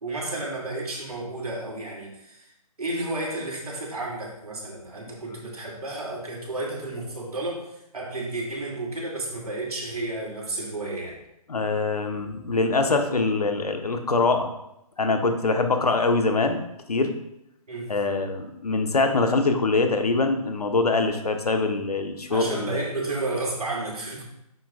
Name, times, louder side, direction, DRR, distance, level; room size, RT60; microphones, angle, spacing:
voice 1, 0.0-2.5 2.8-11.2 17.7-17.9 22.3-24.2, right 2 dB, 75° right, -2 dB, 2.7 m, -32 dB
voice 2, 11.5-14.5 15.0-16.6 16.9-17.1 17.9-22.8, left 3 dB, 85° left, 5 dB, 1.2 m, -23 dB
9.3 x 5.8 x 2.5 m, 0.82 s
figure-of-eight pair, 150°, 19 cm